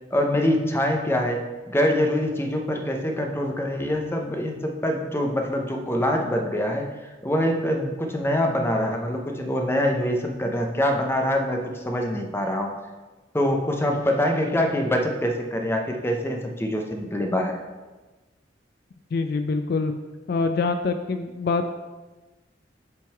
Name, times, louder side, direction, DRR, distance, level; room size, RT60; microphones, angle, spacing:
voice 1, 0.1-6.9 7.2-12.8 13.3-17.6, left 1 dB, 15° left, 2 dB, 0.6 m, -24 dB
voice 2, 19.1-19.9 20.3-21.8, left 4 dB, 55° left, 7 dB, 0.3 m, -25 dB
7.4 x 3.7 x 4.4 m, 1.2 s
head